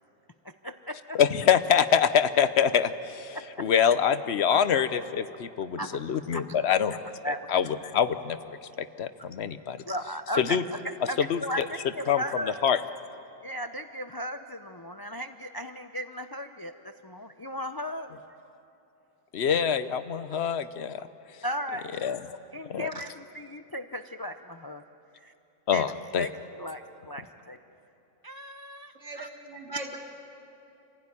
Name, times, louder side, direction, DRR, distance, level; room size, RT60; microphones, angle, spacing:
voice 1, 0.4-1.2 4.5-4.6 5.8-6.0 6.3-6.4 7.2-7.5 9.8-10.8 11.1-12.6 13.4-18.1 21.4-22.1 22.5-24.8 25.2-25.3 25.7-25.9 26.2-26.3 26.6-27.6 28.2-29.3 29.7-29.8, equal, 25° left, 7 dB, 0.5 m, -36 dB
voice 2, 1.1-8.4 8.8-9.8 10.4-10.6 11.2-11.7 12.1-12.2 12.6-12.8 19.3-21.0 22.0-22.2 22.7-22.9 25.7-26.3, left 8 dB, 55° left, 12 dB, 1.0 m, -25 dB
voice 3, 29.0-30.0, right 2 dB, 55° right, 0 dB, 2.8 m, -39 dB
27.5 x 16.5 x 9.8 m, 2.8 s
omnidirectional pair, 1.4 m